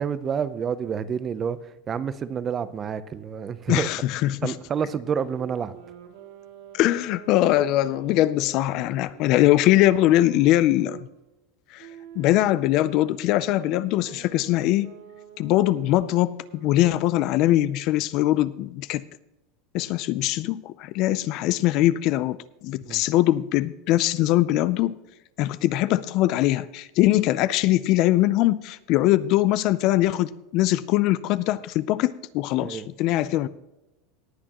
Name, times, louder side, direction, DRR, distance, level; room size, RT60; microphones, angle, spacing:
voice 1, 0.0-3.9 4.4-5.8 22.9-23.0 32.6-32.9, right 7 dB, 20° right, 14 dB, 0.6 m, -29 dB
voice 2, 3.7-4.5 6.7-11.1 11.7-11.9 12.2-14.9 15.4-19.0 19.7-25.0 25.4-33.5, left 15 dB, 45° left, 17 dB, 0.4 m, -22 dB
Wind instrument woodwind instrument, 5.2-11.0 11.8-17.2, right 9 dB, 70° right, 2.3 m, -46 dB
18.5 x 8.7 x 2.9 m, 0.97 s
supercardioid pair, 160°, 0 cm